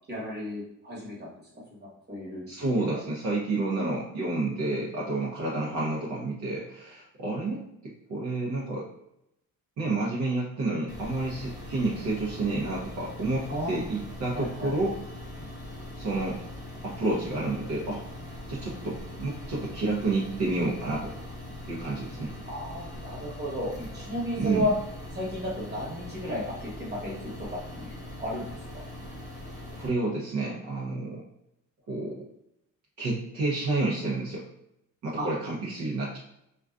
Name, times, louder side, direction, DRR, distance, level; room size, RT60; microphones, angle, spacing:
voice 1, 0.1-1.3 1.8-2.5 13.5-13.8 14.3-14.7 22.4-24.7 25.1-28.5 28.7-28.8 35.2-35.3, left 1 dB, 30° right, -5 dB, 1.1 m, -33 dB
voice 2, 2.5-8.9 9.8-14.9 16.0-16.4 16.8-18.0 18.5-21.1 21.7-22.4 23.8-23.9 24.4-24.7 29.7-31.2 31.9-32.3 33.0-34.4 35.0-36.2, right 2 dB, 60° right, -5 dB, 0.7 m, -30 dB
sound 1, 10.9-29.9, left 1 dB, 10° right, 0.8 m, -41 dB
2.4 x 2.3 x 2.3 m, 0.80 s
cardioid pair, 100°, 34 cm